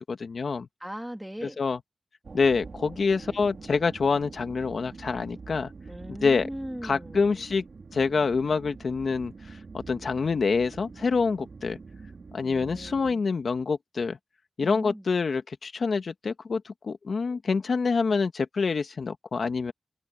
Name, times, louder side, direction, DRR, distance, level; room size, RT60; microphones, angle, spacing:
voice 1, 0.0-0.7 1.4-1.8 2.3-5.7 6.2-6.5 6.8-7.6 7.9-9.3 9.7-11.8 12.3-14.2 14.6-19.7, left 4 dB, 70° left, 1.8 m, -26 dB
voice 2, 0.8-1.6 5.9-7.5 12.4-13.2 14.6-15.1, equal, 5° right, 3.1 m, -39 dB
sound 1, 2.2-13.1, right 4 dB, 60° right, 3.9 m, -45 dB
cardioid pair, 50°, 0 cm